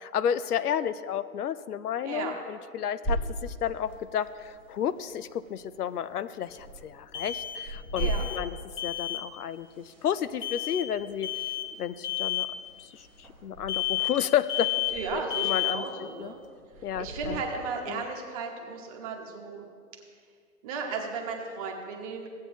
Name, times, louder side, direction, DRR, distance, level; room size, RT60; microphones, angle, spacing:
voice 1, 0.0-8.6 8.8-12.5 12.9-14.7 15.1-15.9 16.2-16.3 16.8-17.4 17.9-18.0, left 9 dB, 85° left, 16 dB, 0.6 m, -31 dB
sound 1, 3.0-17.3, right 1 dB, 5° left, 1.0 m, -40 dB
sound 2, 3.9-4.0 7.1-7.7 8.0-8.5 8.8-9.3 10.4-10.9 11.2-11.7 12.0-12.5 13.7-14.2 14.5-15.0 15.3-15.9, left 15 dB, 40° left, 0.6 m, -31 dB
voice 2, 14.9-16.4 16.8-19.7 20.6-22.3, right 5 dB, 25° right, 1 dB, 1.0 m, -35 dB
16.0 x 8.5 x 3.0 m, 2.1 s
hypercardioid pair, 150°, 45 cm